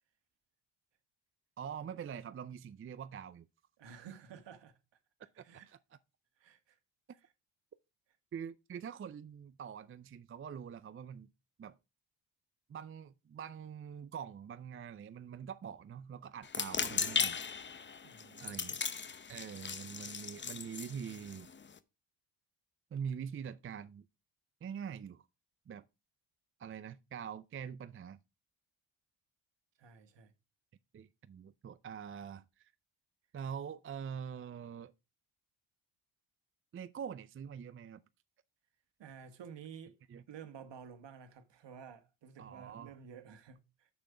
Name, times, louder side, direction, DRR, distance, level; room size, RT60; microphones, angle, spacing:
voice 1, 1.6-3.5 5.4-5.8 8.3-11.3 11.6-11.8 12.7-17.4 18.4-18.8 19.3-21.5 22.9-24.1 24.6-25.3 25.7-25.8 26.6-28.2 30.9-32.7 33.3-34.9 36.7-38.0 40.1-40.2 42.4-43.0, right 7 dB, 30° right, 0.4 m, -44 dB
voice 2, 3.8-4.7 5.4-5.7 6.4-6.8 18.0-18.6 29.8-30.3 39.0-40.0 40.3-43.9, right 7 dB, 60° right, 1.6 m, -52 dB
sound 1, 16.4-21.8, left 6 dB, 25° left, 0.7 m, -37 dB
6.6 x 6.1 x 4.8 m
supercardioid pair, 70°, 48 cm